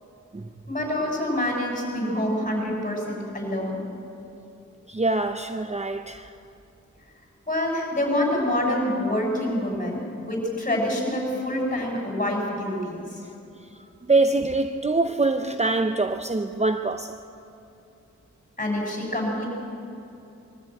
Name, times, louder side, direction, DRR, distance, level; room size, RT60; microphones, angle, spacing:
voice 1, 0.7-3.8 7.5-13.2 18.6-19.4, left 1 dB, 25° left, 6.4 m, -26 dB
voice 2, 4.9-6.3 12.8-12.9 14.1-17.2, right 3 dB, 20° right, 0.7 m, -24 dB
22.5 x 14.0 x 9.0 m
wide cardioid pair, 80°, 30 cm